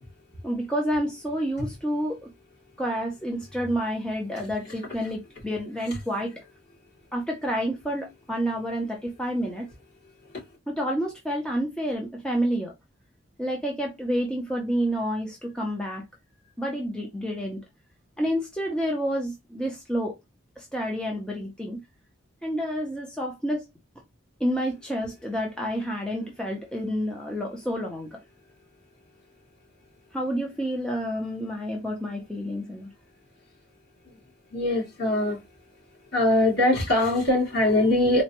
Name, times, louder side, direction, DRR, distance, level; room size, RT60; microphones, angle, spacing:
voice 1, 0.4-2.3 2.8-6.4 7.1-9.7 10.7-12.7 13.4-16.0 16.6-17.6 18.2-20.2 20.6-21.8 22.4-23.7 24.4-28.2 30.1-32.9, equal, 5° left, 0.6 m, -29 dB
voice 2, 4.6-5.1 10.3-10.4 34.0-34.2 34.5-35.4 36.1-38.2, left 1 dB, 50° left, 2.3 m, -23 dB
4.1 x 2.2 x 2.9 m
head